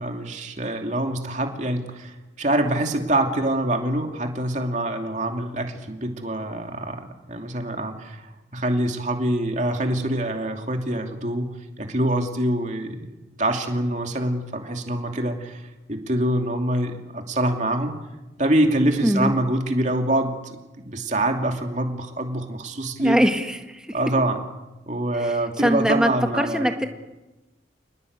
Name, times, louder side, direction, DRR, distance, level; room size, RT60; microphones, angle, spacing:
voice 1, 0.0-13.1 13.4-18.0 18.4-23.2 23.9-24.4 24.9-26.7, right 1 dB, 40° right, 4 dB, 2.7 m, -25 dB
voice 2, 19.0-19.3 23.0-23.8 25.2-26.9, equal, 5° right, 5 dB, 1.7 m, -22 dB
27.5 x 20.0 x 8.2 m, 1.1 s
head